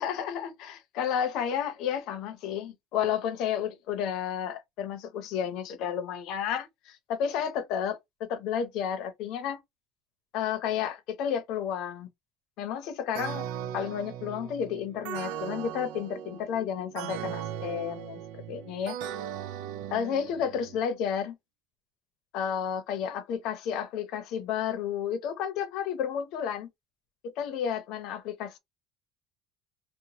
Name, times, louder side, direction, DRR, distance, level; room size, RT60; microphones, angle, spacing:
voice 1, 0.0-8.0 8.3-9.6 10.3-12.1 12.6-13.5 13.7-19.0 19.9-21.3 22.3-26.7 27.4-28.6, left 8 dB, 55° left, 0.7 m, -31 dB
sound 1, 13.1-20.8, right 10 dB, 85° right, 0.3 m, -38 dB
2.9 x 2.1 x 2.7 m
cardioid pair, 165°, 0 cm